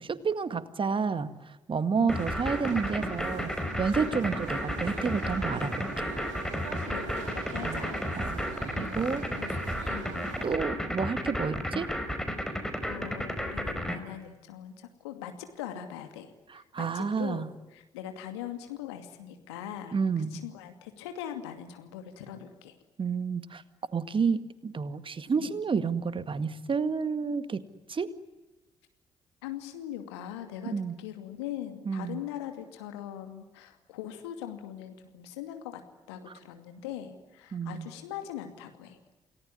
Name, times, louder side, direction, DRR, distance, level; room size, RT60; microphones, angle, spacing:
voice 1, 0.0-3.5 3.8-6.1 7.6-7.8 8.2-8.5 8.8-9.5 10.4-11.9 16.5-17.5 19.9-20.4 23.0-23.6 23.9-27.6 27.9-28.1 30.7-31.0 31.9-32.2 36.3-36.4 37.5-37.9, right 5 dB, 40° right, 12 dB, 1.9 m, -30 dB
voice 2, 2.0-2.3 6.8-8.3 8.7-9.6 9.9-10.2 12.5-16.3 16.5-22.7 25.4-25.5 29.4-30.7 31.0-35.8 36.1-39.0, left 10 dB, 80° left, 7 dB, 2.5 m, -41 dB
sound 1, 2.1-14.0, equal, 5° left, 5.0 m, -32 dB
sound 2, 2.1-10.6, right 7 dB, 65° right, 2.9 m, -43 dB
29.0 x 19.0 x 9.9 m, 1.1 s
figure-of-eight pair, 45°, 14 cm